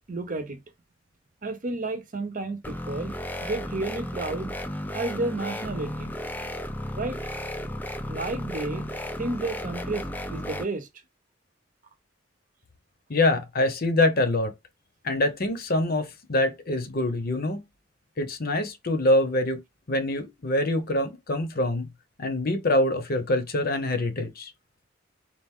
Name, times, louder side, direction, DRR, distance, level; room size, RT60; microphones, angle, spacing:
voice 1, 0.1-0.6 1.4-3.1 3.4-4.5 4.9-6.1 6.9-7.2 8.1-8.9 9.2-10.9, right 2 dB, 45° right, 0.8 m, -31 dB
sound 1, 2.6-10.7, left 1 dB, 10° left, 0.5 m, -34 dB
voice 2, 13.1-14.5 15.0-17.6 18.2-19.6 19.9-21.9 22.2-24.5, left 1 dB, 50° left, 0.9 m, -25 dB
4.5 x 2.5 x 3.6 m
head